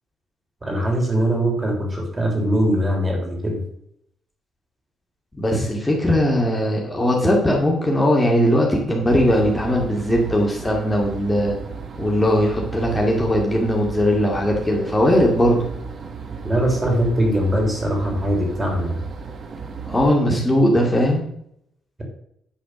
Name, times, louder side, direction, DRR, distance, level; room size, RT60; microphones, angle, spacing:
voice 1, 0.6-3.6 16.4-19.0, equal, 25° right, 1 dB, 3.5 m, -21 dB
voice 2, 5.3-11.6 12.0-15.6 19.9-21.2, equal, 15° left, -1 dB, 2.3 m, -19 dB
sound 1, 9.1-20.1, right 5 dB, 50° right, 1.3 m, -34 dB
10.0 x 5.0 x 6.3 m, 0.73 s
cardioid pair, 90°, 0 cm